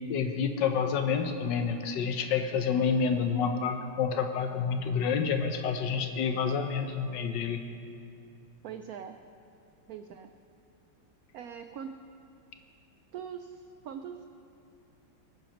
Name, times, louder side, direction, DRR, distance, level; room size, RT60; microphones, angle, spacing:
voice 1, 0.1-7.6, left 6 dB, 70° left, 6 dB, 1.3 m, -28 dB
voice 2, 8.6-9.2 9.9-10.3 11.3-11.9 13.1-14.2, right 8 dB, 85° right, 7 dB, 0.8 m, -42 dB
22.0 x 9.9 x 3.0 m, 2.6 s
omnidirectional pair, 2.1 m